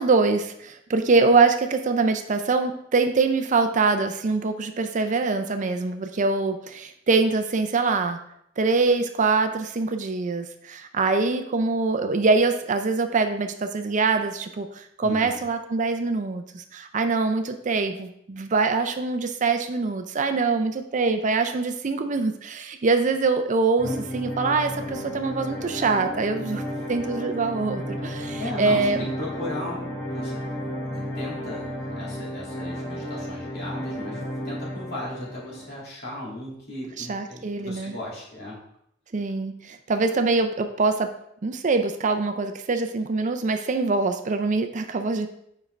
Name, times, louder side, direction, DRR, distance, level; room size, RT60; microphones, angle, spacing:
voice 1, 0.0-8.2 8.6-26.6 26.9-29.1 37.0-37.9 39.1-41.1 41.4-45.3, right 4 dB, 40° right, 7 dB, 0.5 m, -24 dB
voice 2, 15.0-15.4 27.0-27.1 28.4-38.6, left 1 dB, 55° left, -5 dB, 2.5 m, -36 dB
sound 1, 23.8-35.7, equal, 75° left, 2.4 m, -33 dB
7.4 x 5.1 x 3.3 m, 0.74 s
head